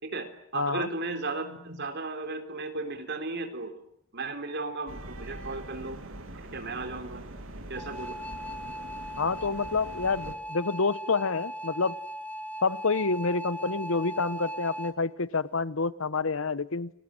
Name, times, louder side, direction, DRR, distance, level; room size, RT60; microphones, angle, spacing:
voice 1, 0.0-3.8 4.1-6.0 6.4-7.2 7.7-8.1, right 3 dB, 55° right, 7 dB, 3.8 m, -35 dB
voice 2, 0.5-0.9 9.2-12.0 12.6-16.9, left 4 dB, 75° left, 17 dB, 1.1 m, -28 dB
sound 1, 4.9-10.3, right 1 dB, 75° right, 3.2 m, -43 dB
sound 2, 7.8-14.9, equal, 5° left, 1.5 m, -38 dB
29.5 x 20.5 x 9.0 m, 0.72 s
head